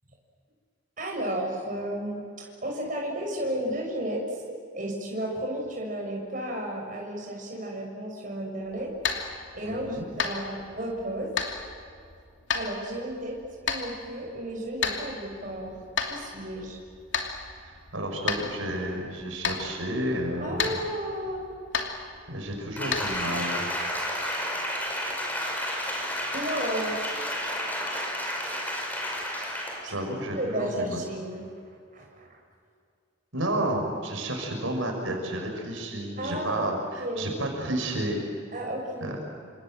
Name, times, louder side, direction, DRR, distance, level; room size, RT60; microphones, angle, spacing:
voice 1, 1.0-8.9 9.5-11.3 12.5-13.4 13.6-16.8 20.4-21.4 26.3-27.0 29.8-29.9 30.3-31.4 31.9-32.3 36.2-36.6 37.0-37.3 38.5-39.2, right 1 dB, 40° right, 0 dB, 6.6 m, -33 dB
sound 1, 8.6-23.3, left 6 dB, 65° left, 2.9 m, -34 dB
voice 2, 9.6-10.1 17.6-20.7 22.3-23.6 29.9-31.0 33.3-38.2 39.0-39.2, right 1 dB, 90° right, 2 dB, 5.9 m, -31 dB
Applause, 22.8-29.9 30.3-30.4, equal, 10° left, 5.3 m, -31 dB
29.0 x 26.5 x 7.7 m, 2.3 s
head